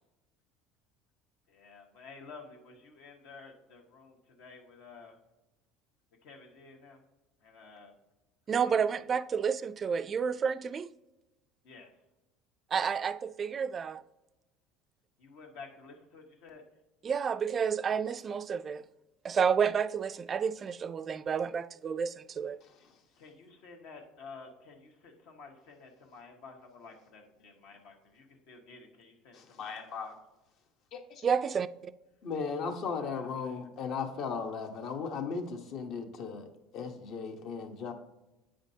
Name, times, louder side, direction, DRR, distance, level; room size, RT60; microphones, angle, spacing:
voice 1, 1.5-5.2 6.2-7.0 7.4-7.9 8.6-8.8 11.6-11.9 15.2-16.6 23.2-30.1 33.0-33.6, left 4 dB, 75° left, 1.5 m, -51 dB
voice 2, 8.5-10.9 12.7-14.0 17.0-18.8 19.2-22.6 31.2-31.9, right 6 dB, 30° right, 0.3 m, -30 dB
voice 3, 29.3-30.1 30.9-31.2 32.2-36.5 36.7-37.9, left 5 dB, 55° left, 1.1 m, -36 dB
8.9 x 5.1 x 2.8 m
supercardioid pair, 120°, 0 cm